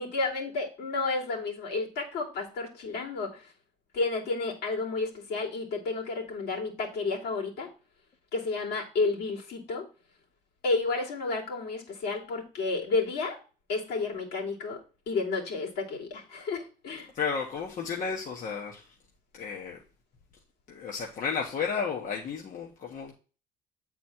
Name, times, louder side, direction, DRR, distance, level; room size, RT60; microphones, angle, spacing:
voice 1, 0.0-3.5 3.9-7.7 8.3-9.9 10.6-13.4 13.7-14.8 15.1-17.1, left 3 dB, 75° left, -2 dB, 2.9 m, -31 dB
voice 2, 17.1-19.0 19.3-19.8 20.7-23.1, left 6 dB, 50° left, -1 dB, 1.3 m, -33 dB
8.4 x 4.2 x 4.4 m, 0.35 s
cardioid pair, 110°, 17 cm